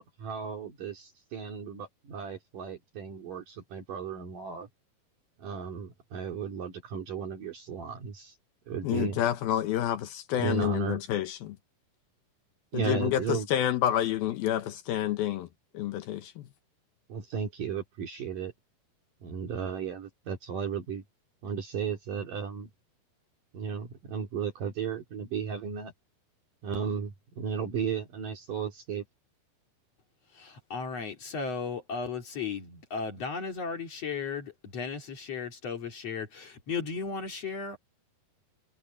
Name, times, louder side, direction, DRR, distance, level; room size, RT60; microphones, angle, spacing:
voice 1, 0.0-4.7 5.4-8.4 8.7-9.2 10.4-11.0 12.7-13.5 17.1-18.5 19.2-21.0 21.4-22.7 23.5-25.9 26.6-29.0, right 6 dB, 55° right, 3.7 m, -35 dB
voice 2, 8.8-11.6 12.7-15.5 15.7-16.5, left 11 dB, 75° left, 2.7 m, -29 dB
voice 3, 30.3-37.8, left 5 dB, 45° left, 3.1 m, -35 dB
omnidirectional pair, 4.6 m